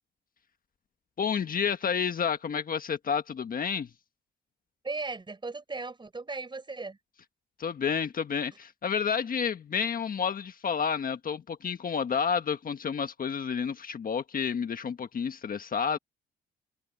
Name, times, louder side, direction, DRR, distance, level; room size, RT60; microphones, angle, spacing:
voice 1, 1.2-3.9 7.6-16.0, left 6 dB, 45° left, 1.5 m, -30 dB
voice 2, 4.8-7.0, right 3 dB, 25° right, 4.7 m, -37 dB
open air
cardioid pair, 90°, 20 cm